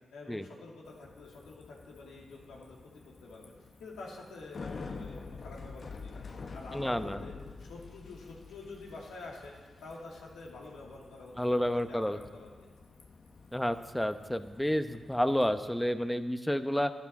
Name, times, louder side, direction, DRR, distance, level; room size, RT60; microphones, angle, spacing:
voice 1, 0.1-3.5 3.8-9.5 9.8-12.5, left 3 dB, 85° left, -3 dB, 2.6 m, -48 dB
Bicycle, 0.9-15.7, left 4 dB, 60° left, 1.2 m, -48 dB
voice 2, 6.7-7.2 11.4-12.2 13.5-16.9, equal, 5° left, 10 dB, 0.9 m, -30 dB
12.0 x 11.5 x 6.0 m, 1.5 s
supercardioid pair, 40°, 0 cm